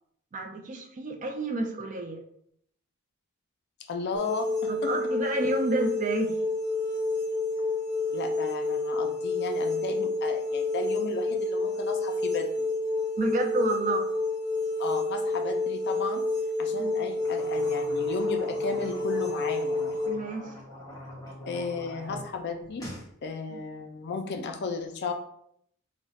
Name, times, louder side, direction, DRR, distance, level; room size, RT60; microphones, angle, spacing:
voice 1, 0.3-2.2 4.7-6.4 13.2-14.1 16.8-16.9 20.1-20.6 23.5-23.6, right 2 dB, 35° right, 4 dB, 0.3 m, -30 dB
voice 2, 3.9-4.9 8.1-12.5 14.8-16.2 16.6-19.9 21.5-22.9 23.2-25.1, left 4 dB, 50° left, 5 dB, 0.3 m, -34 dB
sound 1, 4.1-20.1, left 2 dB, 20° right, 0.7 m, -29 dB
sound 2, 17.1-22.2 22.5-23.1, left 1 dB, 15° left, 0.7 m, -43 dB
2.3 x 2.1 x 3.9 m, 0.71 s
head